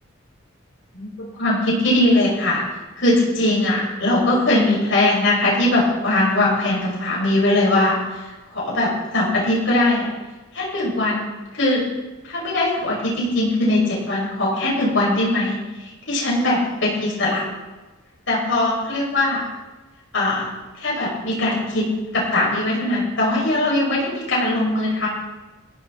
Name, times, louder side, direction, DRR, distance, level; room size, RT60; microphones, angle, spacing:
voice 1, 1.4-2.6 3.0-10.1 10.5-11.3 11.5-11.8 12.2-17.5 18.3-19.5 20.1-20.5 20.8-21.8 22.1-25.1, left 1 dB, 60° left, -5 dB, 6.3 m, -20 dB
20.5 x 15.5 x 4.2 m, 1.2 s
head